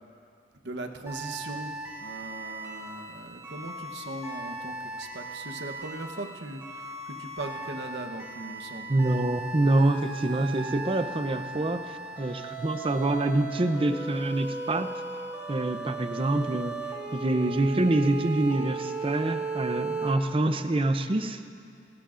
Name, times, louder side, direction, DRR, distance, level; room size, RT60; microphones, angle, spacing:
voice 1, 0.6-1.7 2.0-9.0, right 2 dB, 85° right, 4 dB, 1.0 m, -39 dB
sound 1, 1.1-20.1, right 3 dB, 15° right, 2.7 m, -37 dB
voice 2, 8.9-14.9 15.5-16.8 17.1-21.4, right 2 dB, 30° right, 9 dB, 0.6 m, -26 dB
27.5 x 12.5 x 2.5 m, 2.4 s
head